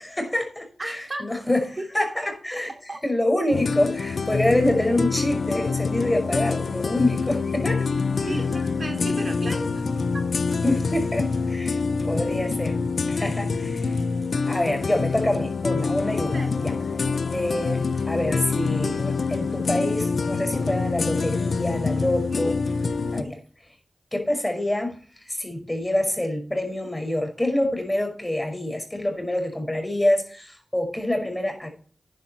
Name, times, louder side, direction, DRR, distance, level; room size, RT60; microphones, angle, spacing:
voice 1, 0.0-2.7 3.0-7.8 8.2-8.4 10.6-11.8 12.0-12.8 13.1-14.0 14.5-16.7 17.3-22.6 23.1-23.4 24.1-31.7, left 1 dB, 20° left, 5 dB, 5.3 m, -26 dB
voice 2, 0.8-1.2 1.8-2.0 2.9-3.0 8.2-9.8 16.3-16.6 22.3-22.6 23.2-23.3, right 2 dB, 50° right, 3 dB, 3.0 m, -34 dB
sound 1, 3.5-23.2, left 4 dB, 75° left, 0.9 m, -26 dB
11.0 x 10.5 x 4.3 m, 0.40 s
cardioid pair, 40°, 0 cm